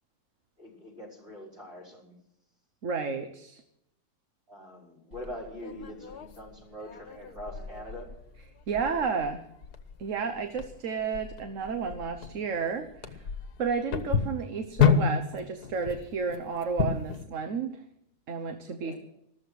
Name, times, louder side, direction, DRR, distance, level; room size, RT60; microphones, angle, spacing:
voice 1, 0.6-2.1 4.5-8.1 18.8-19.0, equal, 40° right, -2 dB, 5.8 m, -43 dB
voice 2, 2.8-3.6 8.7-9.4 10.0-13.2 13.6-17.8 18.3-18.9, right 5 dB, 55° right, 7 dB, 1.3 m, -32 dB
sound 1, 5.1-17.2, left 7 dB, 80° left, 1.7 m, -31 dB
14.0 x 13.5 x 6.3 m, 0.78 s
omnidirectional pair, 1.7 m